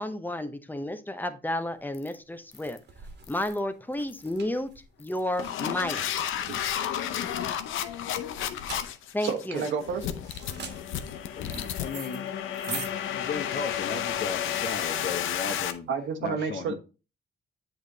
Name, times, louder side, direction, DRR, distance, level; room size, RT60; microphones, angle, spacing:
voice 1, 0.0-2.8 3.3-4.7 5.0-6.0 9.1-9.7, left 1 dB, 10° left, 0.8 m, -31 dB
sound 1, 1.7-16.1, right 5 dB, 60° right, 1.4 m, -45 dB
sound 2, 1.9-2.1 2.5-2.8 3.2-3.6 4.1-4.4 5.0-15.7, left 10 dB, 85° left, 0.7 m, -32 dB
voice 2, 9.2-10.0 15.9-16.7, right 6 dB, 75° right, 1.1 m, -30 dB
voice 3, 11.4-12.3 12.6-15.9 16.2-16.7, left 5 dB, 55° left, 1.3 m, -35 dB
7.9 x 3.4 x 4.0 m
cardioid pair, 90°, 20 cm